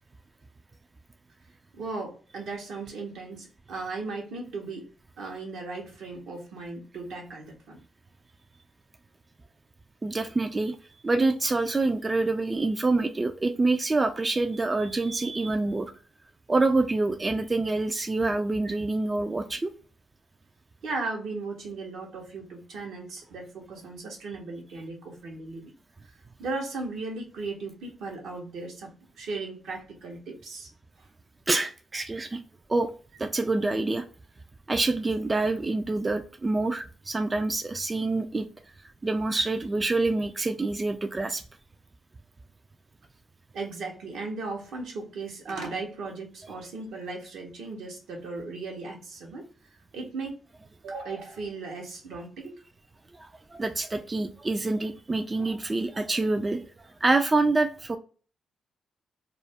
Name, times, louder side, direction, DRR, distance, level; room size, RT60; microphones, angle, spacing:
voice 1, 1.7-4.9 5.2-7.8 18.6-18.7 20.8-25.7 26.4-30.7 43.5-49.5 49.9-50.4 50.8-52.6, right 3 dB, 75° right, 1 dB, 0.8 m, -37 dB
voice 2, 10.0-10.8 11.0-15.9 16.5-19.7 31.5-32.4 32.7-32.9 33.2-34.0 34.7-38.5 39.0-41.4 53.1-56.6 57.0-58.0, right 2 dB, 30° right, 7 dB, 0.3 m, -26 dB
2.3 x 2.0 x 3.4 m, 0.38 s
supercardioid pair, 55°, 0 cm